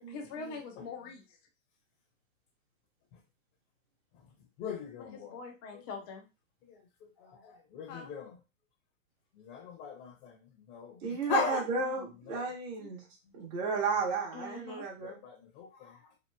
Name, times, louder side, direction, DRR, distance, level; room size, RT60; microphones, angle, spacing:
voice 1, 0.1-1.2 5.0-6.2 7.9-8.2 11.8-12.1 12.8-12.9 14.3-14.9, left 4 dB, 20° left, 1 dB, 0.3 m, -44 dB
voice 2, 4.6-5.4 5.7-5.8 6.7-6.8 7.2-8.3 9.4-10.4 10.7-11.7 12.3-12.4 13.3-13.5 15.0-16.0, left 3 dB, 40° left, 1 dB, 0.8 m, -38 dB
voice 3, 11.0-13.0 13.3-15.2, right 4 dB, 45° right, -4 dB, 0.8 m, -33 dB
2.9 x 2.4 x 2.2 m, 0.27 s
hypercardioid pair, 135°, 41 cm